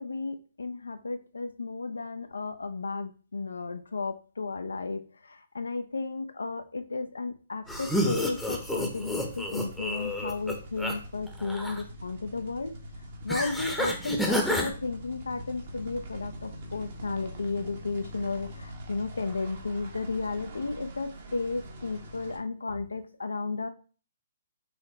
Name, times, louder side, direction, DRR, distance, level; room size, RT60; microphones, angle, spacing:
voice 1, 0.0-12.7 13.2-23.7, left 3 dB, 85° left, 9 dB, 0.5 m, -33 dB
sound 1, 7.6-22.4, equal, 55° right, 1.1 m, -44 dB
sound 2, 7.7-10.9 11.3-11.8 13.3-14.7, equal, ahead, 0.7 m, -30 dB
5.6 x 2.1 x 4.0 m, 0.38 s
hypercardioid pair, 135°, 0 cm